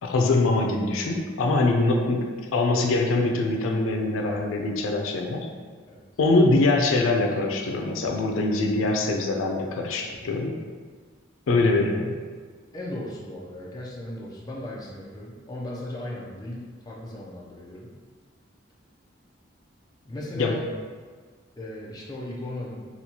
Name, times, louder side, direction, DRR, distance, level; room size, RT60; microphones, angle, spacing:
voice 1, 0.0-5.5 6.2-10.6 11.5-12.2 20.4-20.6, left 2 dB, 90° left, 2 dB, 0.4 m, -23 dB
voice 2, 12.7-17.9 20.0-20.6 21.6-22.9, left 1 dB, 20° left, -5 dB, 0.5 m, -36 dB
4.2 x 2.3 x 2.8 m, 1.5 s
head